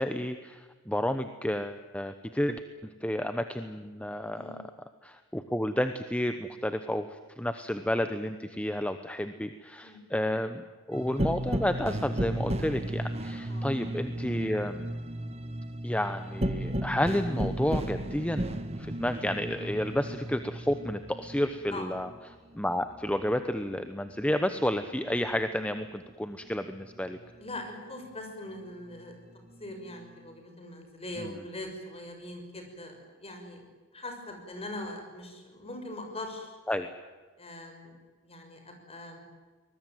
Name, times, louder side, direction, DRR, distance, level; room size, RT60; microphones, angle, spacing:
voice 1, 0.0-2.6 3.0-4.6 5.0-14.9 15.8-22.1 22.5-27.2 31.2-31.3 36.7-36.9, left 1 dB, 5° left, 9 dB, 1.0 m, -31 dB
voice 2, 4.3-4.6 9.8-10.1 13.5-13.7 21.7-21.9 27.4-29.2 29.6-33.6 33.9-36.5 37.4-37.9 38.2-39.2, left 1 dB, 30° left, 4 dB, 6.1 m, -41 dB
sound 1, 10.9-23.9 24.2-26.1 26.4-28.1 28.6-30.4, right 1 dB, 30° right, 1.6 m, -36 dB
24.0 x 21.0 x 9.3 m, 1.4 s
head